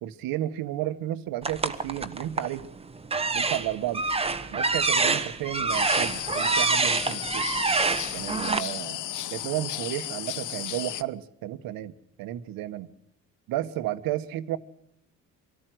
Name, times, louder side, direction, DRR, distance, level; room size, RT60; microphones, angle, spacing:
voice 1, 0.0-2.7 3.3-4.0 4.5-7.5 8.1-9.0 9.3-11.9 12.2-12.9 13.5-14.6, right 13 dB, 90° right, 11 dB, 1.4 m, -32 dB
sound 1, 1.4-2.6 3.0-8.6, right 3 dB, 15° right, 1.3 m, -26 dB
sound 2, 5.7-11.0, left 12 dB, 60° left, 1.0 m, -34 dB
25.0 x 14.0 x 7.8 m, 0.76 s
cardioid pair, 135°, 34 cm